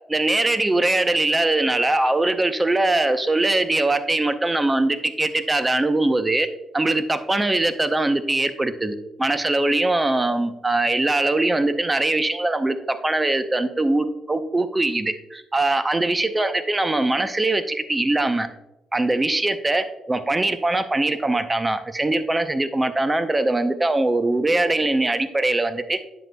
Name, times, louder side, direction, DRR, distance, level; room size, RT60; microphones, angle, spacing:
voice 1, 0.1-6.5 6.7-18.5 18.9-26.0, right 2 dB, 20° right, 10 dB, 0.6 m, -22 dB
9.2 x 7.7 x 2.2 m, 0.93 s
cardioid pair, 90°, 0 cm